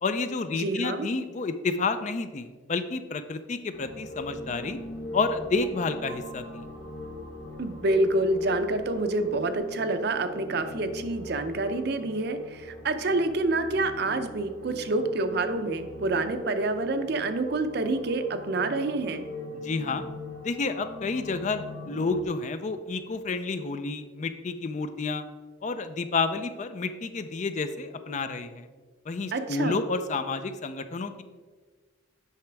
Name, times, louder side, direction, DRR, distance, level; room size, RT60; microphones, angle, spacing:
voice 1, 0.0-4.8 5.1-6.7 19.5-20.1 20.4-25.2 25.6-28.7 29.1-31.2, left 3 dB, 40° left, 10 dB, 0.4 m, -30 dB
voice 2, 0.6-1.1 7.6-19.3 29.3-29.8, right 2 dB, 55° right, 9 dB, 0.6 m, -27 dB
sound 1, 3.7-22.2, left 1 dB, 70° left, 1.1 m, -41 dB
8.3 x 5.8 x 3.4 m, 1.4 s
head